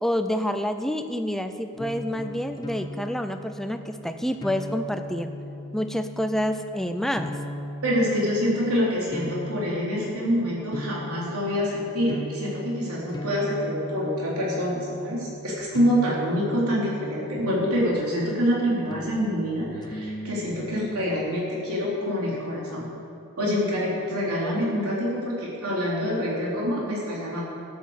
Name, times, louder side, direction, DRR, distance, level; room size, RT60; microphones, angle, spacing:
voice 1, 0.0-5.3 5.7-7.3 24.5-24.7, equal, ahead, 8 dB, 0.5 m, -28 dB
sound 1, 1.7-18.1 18.9-20.8, left 1 dB, 20° left, 0.9 m, -38 dB
voice 2, 7.8-22.8 23.4-27.4, equal, 85° right, -5 dB, 3.7 m, -26 dB
12.5 x 8.6 x 7.3 m, 2.6 s
head